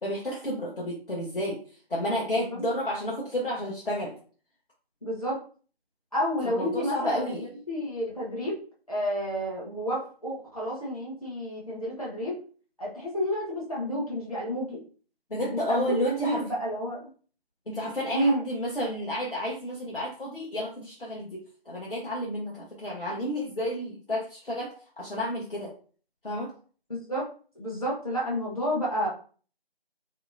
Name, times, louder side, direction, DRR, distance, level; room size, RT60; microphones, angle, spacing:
voice 1, 0.0-1.6 1.9-4.1 6.4-7.5 15.3-16.4 17.7-25.7 26.2-26.5, equal, 60° left, -5 dB, 1.0 m, -31 dB
voice 2, 5.0-5.4 6.1-7.4 7.7-8.6 8.9-12.4 12.8-14.8 15.5-17.1 18.1-18.4 26.9-27.3 27.6-29.1, equal, 35° left, -6 dB, 0.9 m, -30 dB
3.0 x 2.8 x 2.5 m, 0.40 s
figure-of-eight pair, 170°, 31 cm